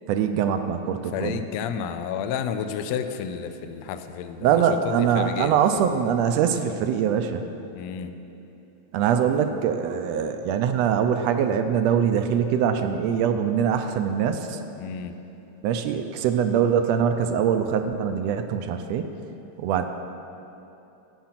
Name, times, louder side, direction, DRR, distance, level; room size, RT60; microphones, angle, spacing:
voice 1, 0.1-1.4 4.4-7.5 8.9-14.6 15.6-19.1 19.6-19.8, right 8 dB, 80° right, 7 dB, 1.6 m, -23 dB
voice 2, 1.1-5.6 7.7-8.1 14.8-15.1, left 7 dB, 75° left, 9 dB, 1.7 m, -31 dB
13.0 x 8.6 x 5.8 m, 2.9 s
omnidirectional pair, 3.3 m